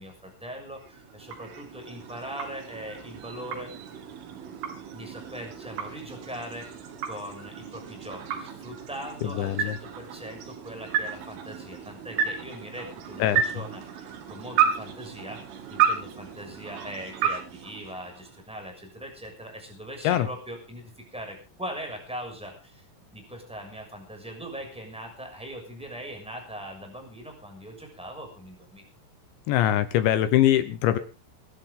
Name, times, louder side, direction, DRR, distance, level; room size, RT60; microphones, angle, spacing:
voice 1, 0.0-3.7 4.9-22.8 23.1-28.8, equal, ahead, 2 dB, 6.1 m, -41 dB
sound 1, 0.7-18.5, right 8 dB, 80° right, 4.8 m, -32 dB
voice 2, 9.4-9.7 13.2-13.4 20.0-20.3 29.5-31.0, left 12 dB, 75° left, 12 dB, 3.0 m, -22 dB
24.5 x 11.0 x 3.8 m, 0.33 s
omnidirectional pair, 5.8 m